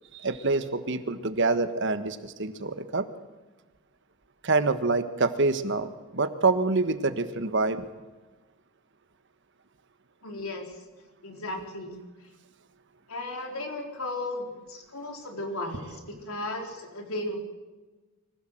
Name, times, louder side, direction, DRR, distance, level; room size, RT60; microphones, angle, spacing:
voice 1, 0.1-3.1 4.4-7.9, right 3 dB, 55° right, 10 dB, 1.4 m, -26 dB
voice 2, 10.2-10.6 11.2-11.9 13.1-17.4, left 2 dB, 80° left, 2 dB, 4.2 m, -35 dB
24.5 x 16.5 x 7.8 m, 1.2 s
head